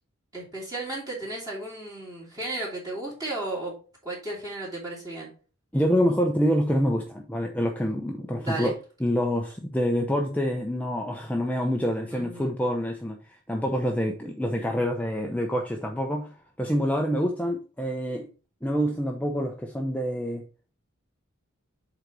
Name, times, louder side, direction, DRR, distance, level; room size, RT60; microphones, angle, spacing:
voice 1, 0.3-3.7 4.0-5.3 8.4-8.7 12.1-12.5, right 2 dB, 15° right, -6 dB, 2.8 m, -34 dB
voice 2, 5.7-8.7 9.0-13.2 13.5-18.3 18.6-20.4, equal, 5° left, 1 dB, 0.6 m, -26 dB
8.0 x 3.9 x 4.7 m, 0.37 s
head